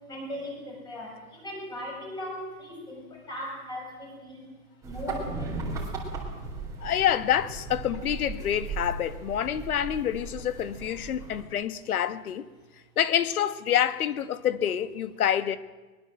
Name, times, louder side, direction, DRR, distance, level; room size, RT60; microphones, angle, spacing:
voice 1, 0.0-4.5 4.8-5.9, left 1 dB, 10° left, 6.7 m, -39 dB
sound 1, 4.8-11.4, right 3 dB, 5° right, 3.8 m, -37 dB
voice 2, 6.8-12.4 13.0-15.6, left 10 dB, 90° left, 1.6 m, -27 dB
23.0 x 22.0 x 7.7 m
supercardioid pair, 175°, 43 cm